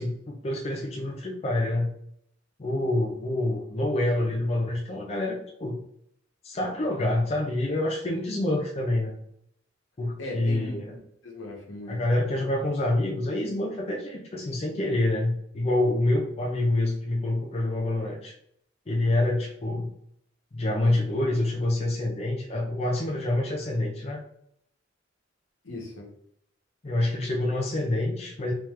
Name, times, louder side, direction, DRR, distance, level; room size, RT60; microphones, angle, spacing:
voice 1, 0.0-1.9 2.6-5.8 6.4-9.2 10.0-11.0 11.9-18.3 18.9-19.9 20.5-24.2 26.8-28.5, left 1 dB, 30° left, -1 dB, 0.5 m, -27 dB
voice 2, 10.2-11.0 11.2-12.0 25.6-26.1, left 1 dB, 75° left, -2 dB, 1.2 m, -38 dB
3.5 x 3.0 x 3.1 m, 0.71 s
head